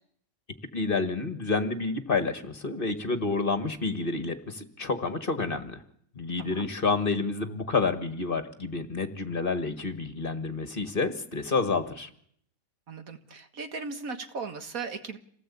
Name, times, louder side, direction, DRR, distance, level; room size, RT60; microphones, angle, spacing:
voice 1, 0.7-5.8 6.2-12.1, left 4 dB, 40° left, 9 dB, 1.8 m, -29 dB
voice 2, 6.4-6.7 12.9-15.2, right 4 dB, 75° right, 8 dB, 2.1 m, -37 dB
27.0 x 18.0 x 8.5 m, 0.67 s
omnidirectional pair, 1.5 m